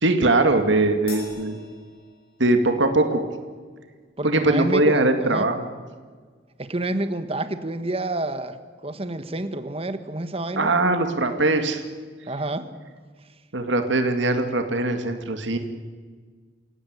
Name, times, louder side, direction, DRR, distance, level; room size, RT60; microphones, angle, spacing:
voice 1, 0.0-1.6 2.4-3.2 4.2-5.6 10.6-11.8 13.5-15.6, right 2 dB, 70° right, 6 dB, 2.3 m, -21 dB
Crash cymbal, 1.1-2.7, left 4 dB, 50° left, 7.6 m, -43 dB
voice 2, 4.2-5.5 6.6-8.6 8.8-10.7 12.3-12.7, right 2 dB, 30° right, 10 dB, 1.6 m, -29 dB
28.0 x 17.5 x 9.7 m, 1.5 s
head